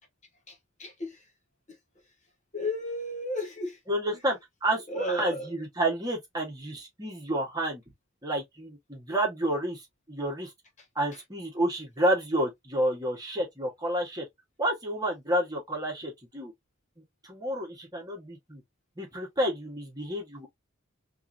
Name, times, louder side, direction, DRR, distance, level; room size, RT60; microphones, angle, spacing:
voice 1, 0.5-1.3 2.5-3.8 4.9-5.5 10.8-10.9 11.1-11.2, left 1 dB, 35° left, 1.0 m, -34 dB
voice 2, 3.9-7.8 8.2-9.8 10.1-10.5 10.9-14.2 14.6-16.5 17.2-18.6 19.0-20.5, right 1 dB, 20° right, 1.5 m, -30 dB
3.5 x 3.2 x 2.7 m
head